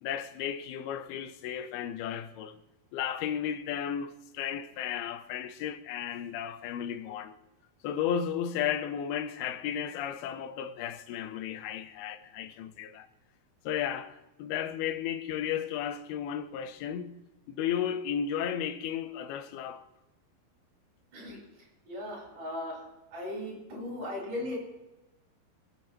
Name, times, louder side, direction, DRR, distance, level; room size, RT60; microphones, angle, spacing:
voice 1, 0.0-2.6 2.9-7.4 7.8-13.1 13.6-17.2 17.5-19.9, left 9 dB, 90° left, 2.6 m, -34 dB
voice 2, 21.9-22.8 23.1-24.5, left 1 dB, 45° right, 6.0 m, -37 dB
23.5 x 8.5 x 3.0 m
omnidirectional pair, 4.4 m